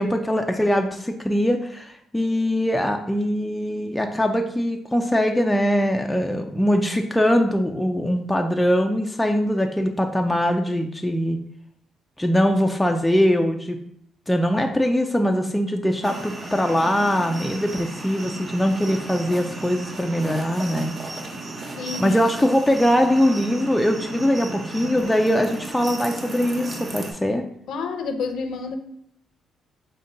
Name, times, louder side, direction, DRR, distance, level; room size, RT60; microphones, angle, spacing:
voice 1, 0.0-11.4 12.2-13.8 14.3-20.9 22.0-27.4, equal, 5° left, 3 dB, 0.3 m, -22 dB
sound 1, 16.0-27.1, right 2 dB, 35° right, 0.7 m, -35 dB
voice 2, 21.8-22.2 27.7-28.8, left 4 dB, 75° left, 6 dB, 0.5 m, -29 dB
5.1 x 2.2 x 3.8 m, 0.71 s
cardioid pair, 90°, 0 cm